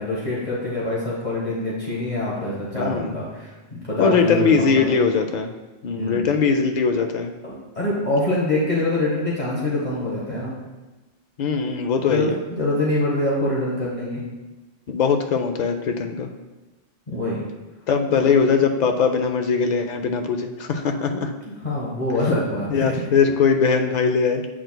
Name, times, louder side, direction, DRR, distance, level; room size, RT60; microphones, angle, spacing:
voice 1, 0.0-4.9 5.9-6.2 7.4-10.5 12.1-14.2 17.1-17.4 18.1-18.3 21.4-23.0, left 1 dB, 40° left, -6 dB, 1.3 m, -25 dB
voice 2, 2.8-3.1 4.0-5.5 5.8-7.3 11.4-12.4 14.9-16.3 17.9-21.3 22.7-24.4, left 5 dB, 70° left, 5 dB, 0.4 m, -20 dB
7.8 x 6.2 x 2.2 m, 1.1 s
omnidirectional pair, 1.3 m